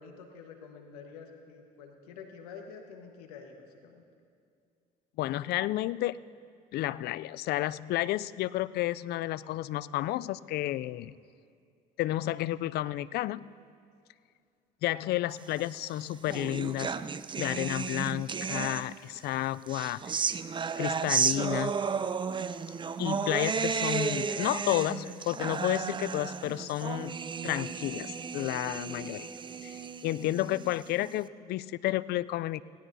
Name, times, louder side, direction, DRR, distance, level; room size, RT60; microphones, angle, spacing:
voice 1, 0.0-4.0 24.2-25.4, left 5 dB, 90° left, 3 dB, 1.4 m, -48 dB
voice 2, 5.2-6.2 6.7-11.1 12.0-13.5 14.8-16.9 17.4-20.4 20.8-21.8 23.0-29.3 29.6-32.6, left 15 dB, 60° left, 19 dB, 0.4 m, -31 dB
sound 1, 15.7-19.2 19.7-31.1, right 6 dB, 25° right, 0.5 m, -33 dB
18.5 x 17.5 x 2.7 m, 2.3 s
hypercardioid pair, 65°, 19 cm